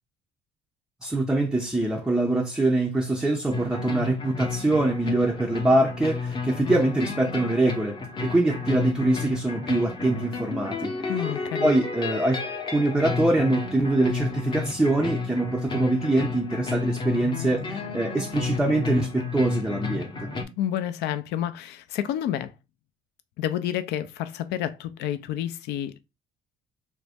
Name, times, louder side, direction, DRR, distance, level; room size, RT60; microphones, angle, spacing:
voice 1, 1.0-10.9 11.6-20.3, right 2 dB, 5° right, 0.4 m, -24 dB
sound 1, 3.5-20.4, left 4 dB, 30° left, 0.7 m, -32 dB
voice 2, 11.1-11.8 20.6-22.5 23.4-26.0, left 11 dB, 80° left, 0.5 m, -29 dB
3.1 x 2.5 x 3.4 m
cardioid pair, 110°, 17 cm